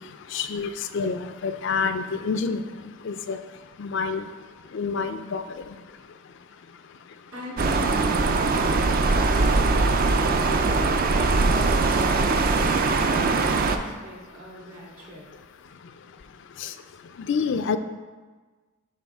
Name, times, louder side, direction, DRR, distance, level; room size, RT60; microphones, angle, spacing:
voice 1, 0.3-2.6 3.1-3.4 3.8-4.3 4.7-5.4 16.6-16.7 17.3-17.8, left 5 dB, 55° left, 10 dB, 0.4 m, -27 dB
voice 2, 7.3-11.4 11.7-15.3, left 1 dB, 70° right, -4 dB, 1.9 m, -40 dB
sound 1, 7.6-13.8, right 3 dB, 40° right, 0.4 m, -21 dB
10.5 x 3.7 x 3.5 m, 1.4 s
head